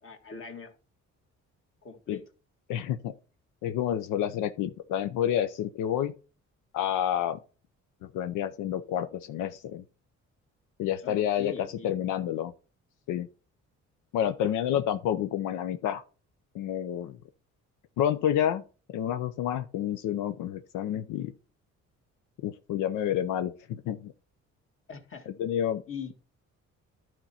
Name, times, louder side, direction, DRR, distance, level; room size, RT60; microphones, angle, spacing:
voice 1, 0.0-0.7 1.8-2.2 11.0-11.9 24.9-25.3 25.9-26.1, left 6 dB, 45° left, 1.8 m, -41 dB
voice 2, 2.7-3.1 3.6-6.1 6.7-7.4 8.0-9.8 10.8-12.5 13.1-13.3 14.1-16.0 16.5-17.2 18.0-18.6 18.9-21.3 22.4-24.1 25.3-25.8, left 10 dB, 90° left, 0.6 m, -29 dB
11.5 x 4.4 x 4.2 m
cardioid pair, 90°, 30 cm